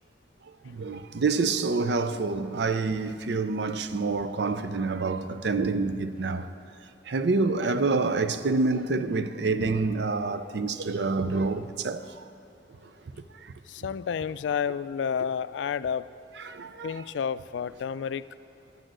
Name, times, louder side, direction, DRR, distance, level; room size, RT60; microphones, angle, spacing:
voice 1, 0.6-6.5 7.1-12.1 16.4-16.9, right 3 dB, 70° right, 0.5 m, -27 dB
voice 2, 13.7-16.1 16.8-18.2, left 7 dB, 85° left, 0.3 m, -30 dB
10.0 x 9.0 x 7.6 m
head